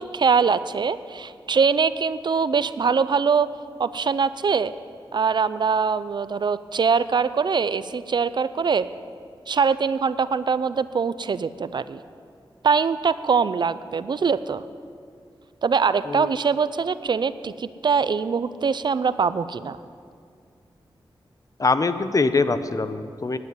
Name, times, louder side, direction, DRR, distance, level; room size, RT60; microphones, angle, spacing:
voice 1, 0.0-3.5 3.8-4.7 5.1-8.9 9.5-12.0 12.6-14.6 15.6-19.8, right 5 dB, 55° right, 14 dB, 0.4 m, -23 dB
voice 2, 21.6-23.4, left 3 dB, 40° left, 11 dB, 0.7 m, -23 dB
9.5 x 9.3 x 9.7 m, 2.2 s
wide cardioid pair, 75°, 9 cm